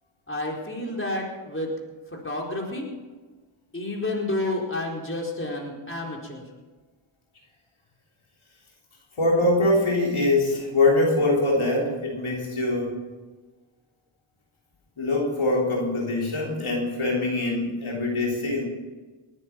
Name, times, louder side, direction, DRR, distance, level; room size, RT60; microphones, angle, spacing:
voice 1, 0.3-1.7 2.1-2.9 3.7-6.4, left 2 dB, 25° left, -1 dB, 4.3 m, -30 dB
voice 2, 9.2-13.0 15.0-18.7, left 2 dB, 70° left, -2 dB, 3.8 m, -23 dB
20.0 x 9.7 x 6.1 m, 1.3 s
cardioid pair, 45°, 50 cm